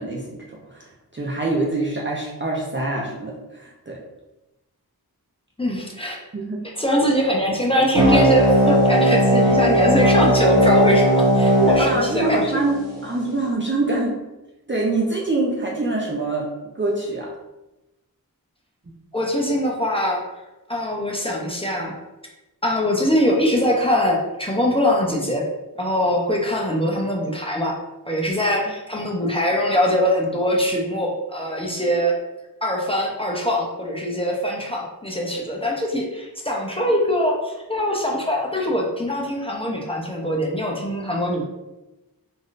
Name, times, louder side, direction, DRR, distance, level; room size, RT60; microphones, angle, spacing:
voice 1, 0.0-4.0 6.3-6.6 11.6-14.2 14.7-16.5 16.7-17.3, right 2 dB, 30° right, -3 dB, 0.5 m, -25 dB
voice 2, 5.6-6.2 6.8-12.6 19.1-20.2 20.7-21.9 22.6-25.5 25.8-27.8 28.1-32.2 32.6-41.4, equal, 15° left, -2 dB, 0.6 m, -22 dB
sound 1, 7.9-12.9, equal, 55° right, 1.1 m, -18 dB
3.4 x 2.6 x 2.4 m, 1.0 s
wide cardioid pair, 40°, 37 cm